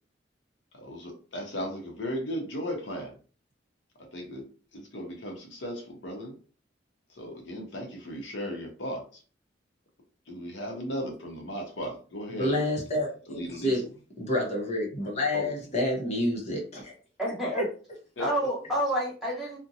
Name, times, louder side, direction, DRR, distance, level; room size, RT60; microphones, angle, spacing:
voice 1, 0.7-3.1 4.0-4.5 4.7-6.4 7.1-9.2 10.3-12.6 13.3-13.8 15.3-15.5 18.2-18.3, equal, 80° left, 2 dB, 0.7 m, -36 dB
voice 2, 12.3-13.8 14.2-16.9 17.5-17.6, left 1 dB, 40° left, -1 dB, 0.8 m, -29 dB
voice 3, 17.2-17.6 18.2-19.6, equal, ahead, -6 dB, 1.2 m, -29 dB
2.5 x 2.1 x 2.6 m, 0.38 s
head